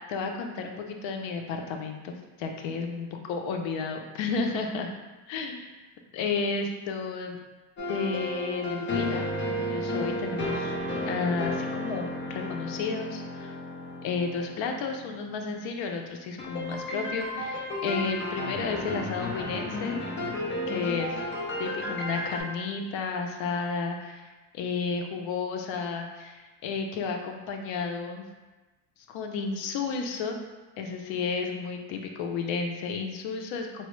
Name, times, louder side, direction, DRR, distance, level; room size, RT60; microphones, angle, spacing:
voice 1, 0.1-4.9 5.3-5.7 6.1-7.4 7.9-10.8 11.1-13.6 14.0-20.0 20.7-21.2 21.6-28.3 29.1-30.4 30.8-33.9, left 4 dB, 90° left, 4 dB, 0.6 m, -32 dB
sound 1, 7.8-15.5 16.4-22.4, left 1 dB, 25° left, 0.4 m, -33 dB
4.1 x 2.0 x 3.0 m, 1.2 s
cardioid pair, 155°, 44 cm